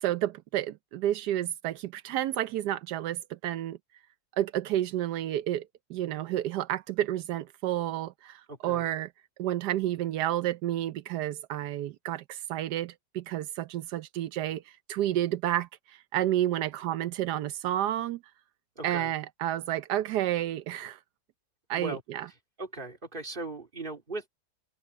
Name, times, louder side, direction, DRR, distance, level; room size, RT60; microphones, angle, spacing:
voice 1, 0.0-3.8 4.4-9.1 9.4-18.2 18.8-21.0 21.7-22.3, right 12 dB, 85° right, 1.3 m, -30 dB
voice 2, 8.5-8.8 18.8-19.1 21.8-22.0 22.6-24.3, right 2 dB, 30° right, 3.2 m, -38 dB
omnidirectional pair, 1.7 m